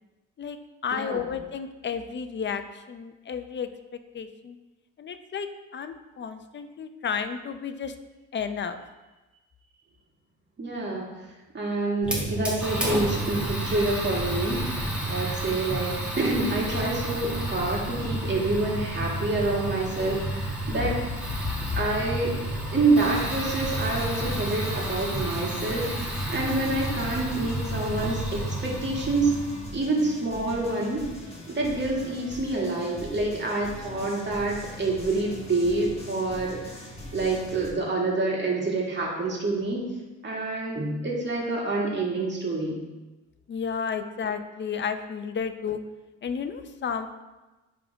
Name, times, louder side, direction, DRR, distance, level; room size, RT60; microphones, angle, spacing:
voice 1, 0.8-4.6 5.0-7.9 8.3-8.8 20.7-20.9 21.7-21.8 26.9-27.0 43.5-45.8 46.2-47.1, left 6 dB, 40° left, 9 dB, 0.6 m, -32 dB
voice 2, 10.6-11.1 11.5-14.7 15.1-21.0 21.7-29.3 29.7-31.1 31.5-36.8 37.1-39.8 40.2-42.8, right 2 dB, 35° right, -3 dB, 2.1 m, -27 dB
Fire, 12.0-29.6, right 1 dB, 5° right, 2.0 m, -31 dB
sound 1, 23.0-37.7, left 1 dB, 20° left, 1.7 m, -42 dB
10.0 x 3.8 x 3.5 m, 1.1 s
cardioid pair, 90°, 30 cm